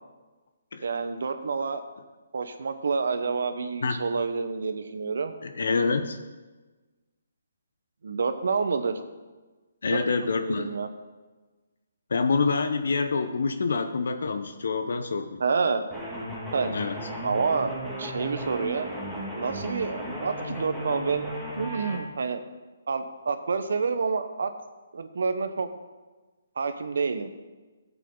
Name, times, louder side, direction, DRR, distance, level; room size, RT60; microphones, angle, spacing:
voice 1, 0.8-1.8 2.3-5.3 8.0-9.0 9.9-10.0 10.4-10.9 15.4-15.8 16.5-16.7 17.2-18.9 19.3-22.4 22.9-24.5 24.9-25.7 26.6-27.3, right 4 dB, 70° right, 9 dB, 1.0 m, -28 dB
voice 2, 5.4-6.2 9.8-10.7 12.1-15.4 16.7-17.0, left 4 dB, 75° left, 8 dB, 0.8 m, -26 dB
sound 1, 15.9-22.0, right 1 dB, ahead, 2.5 m, -35 dB
13.0 x 8.2 x 3.8 m, 1.3 s
hypercardioid pair, 155°, 0 cm